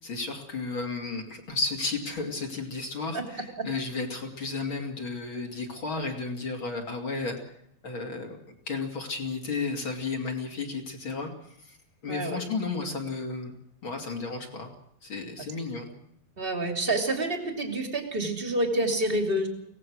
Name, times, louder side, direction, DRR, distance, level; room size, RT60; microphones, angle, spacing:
voice 1, 0.0-7.4 7.8-8.4 8.7-11.8 12.0-13.5 13.8-14.7 15.0-15.9, left 4 dB, 35° left, 3 dB, 3.2 m, -33 dB
voice 2, 12.1-12.4 16.4-19.5, right 1 dB, 15° right, 5 dB, 2.5 m, -28 dB
24.0 x 18.0 x 6.4 m, 0.73 s
omnidirectional pair, 4.2 m